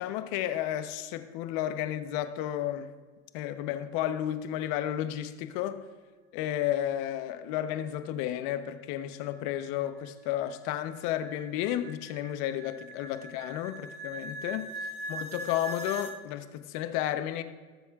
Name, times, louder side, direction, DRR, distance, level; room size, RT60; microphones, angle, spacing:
voice 1, 0.0-2.9 3.3-5.8 6.3-14.7 15.1-17.4, left 12 dB, 55° left, 1.0 m, -32 dB
sound 1, 9.0-16.2, right 1 dB, 15° right, 0.9 m, -42 dB
19.0 x 7.7 x 2.5 m
supercardioid pair, 115°, 44 cm